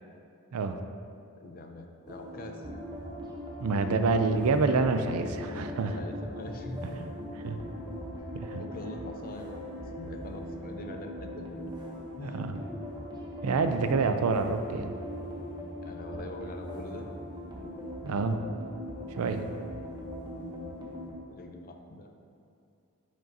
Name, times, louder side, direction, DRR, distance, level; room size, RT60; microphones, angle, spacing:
voice 1, 1.4-2.6 5.5-7.4 8.5-9.6 9.9-11.5 12.2-12.5 13.5-13.7 15.8-17.1 20.3-20.8 21.3-22.1, left 2 dB, 40° left, 4 dB, 0.5 m, -43 dB
sound 1, 2.1-21.1, equal, 20° right, 0.8 m, -40 dB
voice 2, 3.6-6.0 7.4-7.6 8.3-8.6 12.2-12.6 13.4-14.9 18.0-18.5 19.2-19.5, right 4 dB, 85° right, 8 dB, 0.4 m, -27 dB
sound 2, 5.2-8.2, left 2 dB, 60° right, 0.8 m, -50 dB
9.0 x 5.2 x 2.7 m, 2.5 s
head